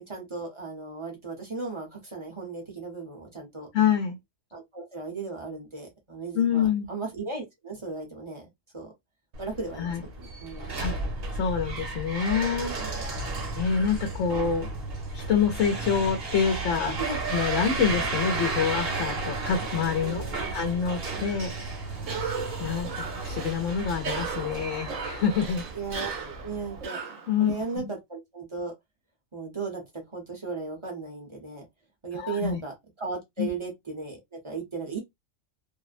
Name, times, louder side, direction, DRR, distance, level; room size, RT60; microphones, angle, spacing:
voice 1, 0.1-3.7 4.5-8.9 9.4-10.7 16.7-17.2 20.0-20.5 25.7-27.0 27.4-28.7 29.3-31.7 32.0-35.0, right 4 dB, 30° right, 0.7 m, -36 dB
voice 2, 3.7-4.2 6.3-6.9 9.8-10.0 10.8-10.9 11.3-13.1 13.5-14.7 15.1-17.0 17.3-20.2 20.5-21.5 22.6-25.6 27.3-27.9 32.1-32.6 33.4-33.5, left 7 dB, 75° left, 0.9 m, -26 dB
sound 1, 9.3-26.8, right 3 dB, 55° right, 1.0 m, -33 dB
Cough, 22.0-27.8, right 5 dB, 75° right, 1.1 m, -37 dB
2.6 x 2.0 x 2.4 m
omnidirectional pair, 1.3 m